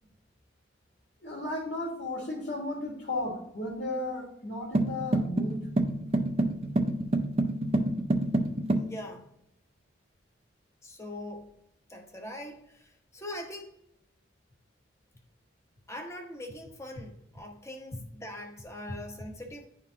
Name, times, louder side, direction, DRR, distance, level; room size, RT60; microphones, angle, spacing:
voice 1, 1.2-5.7, left 2 dB, 70° left, 1.7 m, -34 dB
sound 1, 4.7-8.9, right 1 dB, 30° right, 0.6 m, -28 dB
voice 2, 8.8-9.3 10.8-11.5 11.9-13.8 15.9-19.7, left 1 dB, 15° left, 0.9 m, -42 dB
10.5 x 3.8 x 2.8 m
head